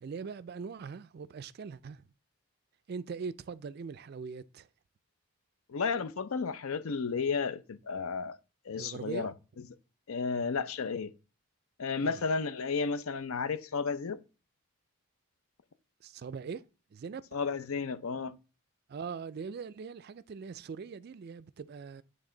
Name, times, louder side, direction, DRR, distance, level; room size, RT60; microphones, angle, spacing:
voice 1, 0.0-2.0 2.9-4.7 8.8-9.3 12.0-12.2 16.0-16.6 16.9-17.2 18.9-22.0, right 5 dB, 45° right, 0.3 m, -41 dB
voice 2, 5.7-8.4 8.7-9.3 10.1-11.1 11.8-14.2 17.3-18.4, left 5 dB, 70° left, 0.5 m, -32 dB
9.3 x 3.3 x 3.8 m
head